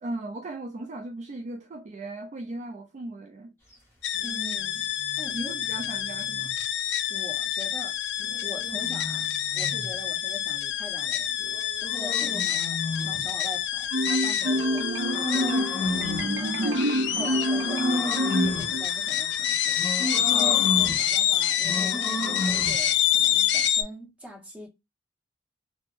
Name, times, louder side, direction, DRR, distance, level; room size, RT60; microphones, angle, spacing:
voice 1, 0.0-3.5 5.3-6.5 20.3-20.5, right 2 dB, 40° right, 0.3 m, -37 dB
sound 1, 4.0-23.8, left 11 dB, 65° left, 0.4 m, -27 dB
sound 2, 4.1-6.5 8.2-10.0 11.4-13.4 14.4-16.4 17.1-18.8 19.7-21.1 21.6-22.9, left 1 dB, 15° left, 1.5 m, -33 dB
voice 2, 4.2-4.9 5.2-5.5 7.1-8.0 8.4-11.4 11.8-19.8 20.1-24.7, equal, 5° right, 1.1 m, -43 dB
Marimba xylophone, 13.9-19.1, right 1 dB, 90° right, 0.6 m, -27 dB
3.4 x 2.0 x 2.5 m
head